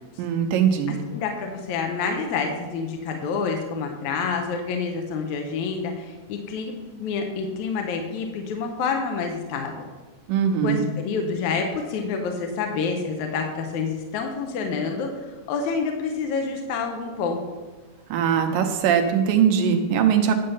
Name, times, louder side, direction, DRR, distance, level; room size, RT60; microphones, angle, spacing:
voice 1, 0.2-1.0 10.3-10.9 18.1-20.3, right 8 dB, 90° right, 5 dB, 2.7 m, -21 dB
voice 2, 0.9-9.8 10.6-17.4, left 5 dB, 70° left, 3 dB, 2.2 m, -28 dB
11.0 x 7.5 x 5.5 m, 1.3 s
omnidirectional pair, 3.9 m